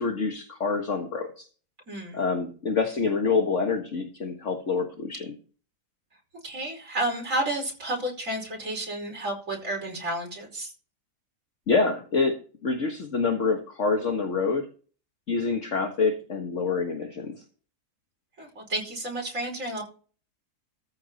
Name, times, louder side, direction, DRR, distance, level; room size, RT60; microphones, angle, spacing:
voice 1, 0.0-1.5 2.1-5.3 11.7-14.7 15.3-17.4, left 4 dB, 50° left, 4 dB, 1.8 m, -26 dB
voice 2, 1.9-2.2 6.4-10.7 18.4-19.8, right 1 dB, 50° right, 0 dB, 5.4 m, -31 dB
14.0 x 6.4 x 4.2 m, 0.37 s
omnidirectional pair, 1.7 m